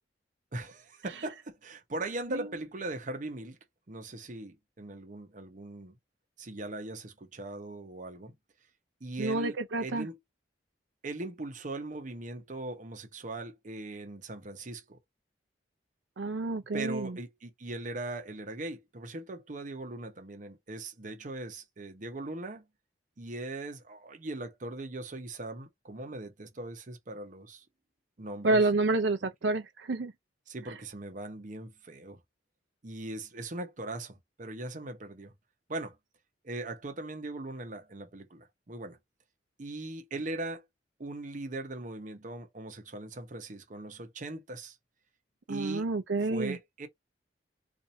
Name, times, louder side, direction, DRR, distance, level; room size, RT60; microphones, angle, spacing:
voice 1, 0.5-3.6 3.9-6.0 6.4-8.3 9.0-10.2 11.0-15.0 16.7-22.6 23.2-27.6 28.2-28.6 30.5-32.2 32.8-35.3 35.7-36.0 36.4-39.0 39.6-40.6 41.0-44.8 45.5-45.9 46.3-46.9, right 2 dB, 45° right, 0.8 m, -40 dB
voice 2, 9.2-10.1 16.2-17.1 28.4-30.1 45.5-46.6, right 2 dB, 80° right, 0.6 m, -29 dB
2.7 x 2.5 x 4.1 m
head